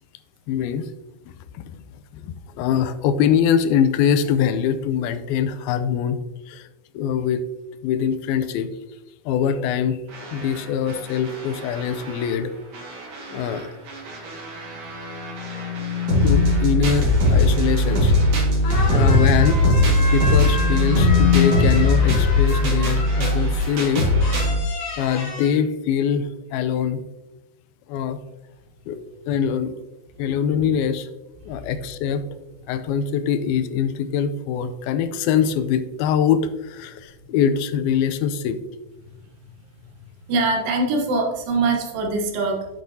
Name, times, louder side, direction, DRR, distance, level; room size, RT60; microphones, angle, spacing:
voice 1, 0.5-0.9 1.5-1.6 2.1-6.2 6.5-6.7 6.9-7.4 7.8-8.7 9.3-10.0 10.3-12.5 13.3-13.7 16.2-18.1 18.9-19.6 20.1-24.4 24.8-27.0 27.9-28.2 28.9-29.0 29.3-29.7 30.2-31.1 31.5-32.2 32.7-38.6, left 8 dB, 85° left, 11 dB, 2.4 m, -23 dB
sound 1, 10.1-12.3 12.7-24.6, left 1 dB, 45° right, 2.5 m, -20 dB
sound 2, 14.6-16.9 19.9-21.5, left 12 dB, 40° left, 2.7 m, -25 dB
sound 3, 18.3-18.4 18.6-23.5 24.2-25.5, left 2 dB, 60° left, 3.0 m, -32 dB
voice 2, 40.3-42.7, right 3 dB, 70° right, 1 dB, 2.8 m, -22 dB
10.0 x 6.7 x 2.8 m, 1.0 s
omnidirectional pair, 4.4 m